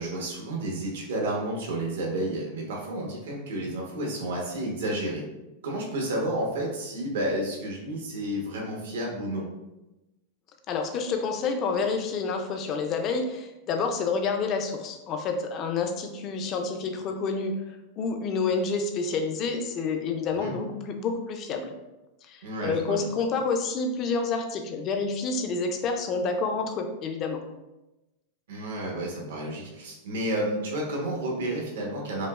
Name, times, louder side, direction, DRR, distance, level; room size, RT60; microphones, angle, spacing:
voice 1, 0.0-5.2 5.6-9.5 20.4-20.5 22.4-23.0 28.5-32.3, right 1 dB, 85° right, -1 dB, 1.0 m, -31 dB
voice 2, 10.7-17.5 18.0-21.7 22.2-27.4, left 4 dB, 35° left, 5 dB, 0.4 m, -28 dB
5.0 x 2.0 x 2.3 m, 1.0 s
supercardioid pair, 150°, 0 cm